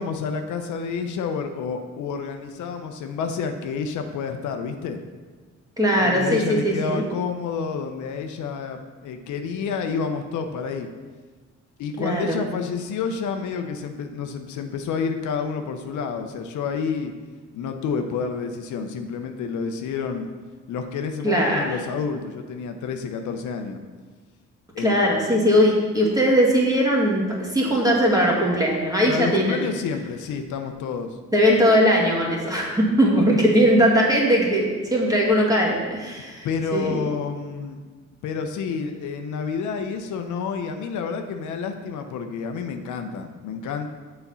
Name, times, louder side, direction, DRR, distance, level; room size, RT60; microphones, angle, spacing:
voice 1, 0.0-5.0 6.0-10.9 11.8-17.1 17.5-20.3 20.7-23.8 24.7-25.0 29.0-31.2 36.4-37.8 38.2-43.9, left 5 dB, 75° left, 6 dB, 0.7 m, -29 dB
voice 2, 5.8-7.0 12.0-12.4 21.2-21.7 24.8-29.6 31.3-36.5 36.7-37.0, equal, 10° right, -3 dB, 2.0 m, -20 dB
7.0 x 4.3 x 5.5 m, 1.4 s
cardioid pair, 90°, 30 cm